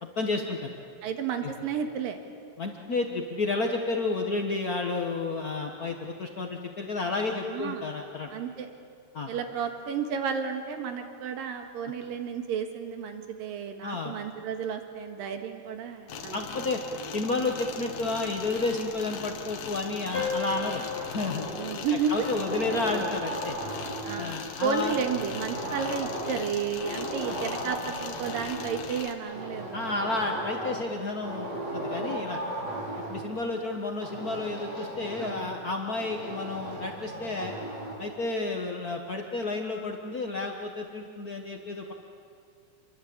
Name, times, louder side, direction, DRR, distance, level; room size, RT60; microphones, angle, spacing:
voice 1, 0.0-0.7 1.4-1.5 2.6-8.3 9.1-9.3 13.8-14.1 16.3-16.8 17.1-20.8 21.1-21.5 22.1-23.6 24.2-25.0 27.2-27.4 29.7-32.4 33.1-37.6 38.0-41.9, left 3 dB, 55° left, 2 dB, 1.0 m, -31 dB
voice 2, 1.0-2.2 7.5-7.8 8.3-8.7 9.3-16.5 21.5-22.3 24.0-29.8 31.8-32.2 35.2-35.5, right 6 dB, 85° right, 5 dB, 3.4 m, -32 dB
sound 1, 16.1-29.1, left 6 dB, 85° left, 3.3 m, -40 dB
sound 2, 20.1-25.1, left 4 dB, 35° left, 6.3 m, -38 dB
sound 3, 20.2-21.8 22.1-24.2 24.9-26.5 26.8-28.8 29.3-30.9 31.2-33.2 34.0-35.6 36.0-38.0, right 1 dB, 50° right, 6.5 m, -36 dB
28.0 x 22.5 x 8.7 m, 2.5 s
omnidirectional pair, 3.9 m